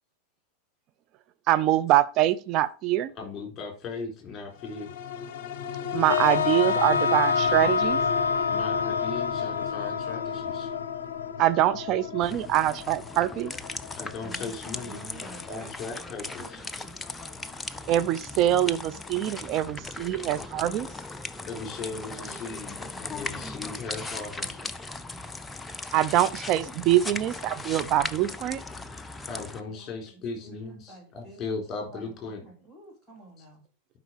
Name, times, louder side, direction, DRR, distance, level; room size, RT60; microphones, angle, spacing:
voice 1, 1.5-3.1 5.9-8.0 11.4-13.6 17.8-20.9 25.9-28.6, right 13 dB, 40° right, 0.5 m, -24 dB
voice 2, 3.2-4.9 8.5-10.7 14.0-15.1 15.5-16.6 21.4-24.6 29.3-32.4 33.4-33.5, left 4 dB, 25° left, 3.9 m, -37 dB
sound 1, 4.6-19.3 19.7-19.8, left 7 dB, 50° left, 0.8 m, -36 dB
sound 2, 6.1-12.1, left 5 dB, 70° left, 0.4 m, -28 dB
sound 3, 12.2-29.6, left 3 dB, 10° left, 0.5 m, -38 dB
voice 3, 14.2-15.7 16.4-16.5 16.8-17.0 21.9-22.4 22.7-23.9 24.4-24.9 29.2-29.3 29.7-30.0 30.4-31.6 31.9-33.6, right 2 dB, 10° right, 2.9 m, -49 dB
11.5 x 5.0 x 4.7 m
figure-of-eight pair, 90°, 0 cm